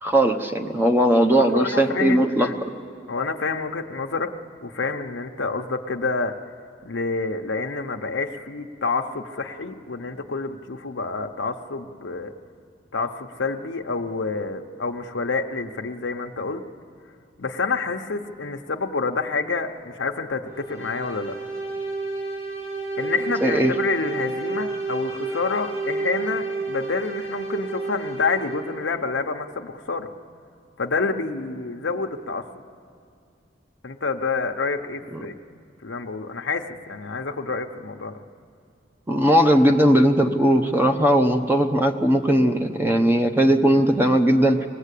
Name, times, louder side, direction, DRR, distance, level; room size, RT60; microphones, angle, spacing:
voice 1, 0.0-2.5 23.4-23.7 35.1-35.2 39.1-44.7, equal, 10° right, 5 dB, 0.9 m, -18 dB
voice 2, 1.3-2.5 3.1-4.3 4.6-6.3 6.8-12.3 12.9-16.6 17.4-21.4 23.0-30.1 30.8-32.5 33.8-35.4 35.8-38.2, left 4 dB, 85° left, 3 dB, 0.9 m, -28 dB
sound 1, 20.5-28.8, right 3 dB, 45° right, 5.9 m, -31 dB
27.0 x 19.5 x 8.4 m, 2.3 s
head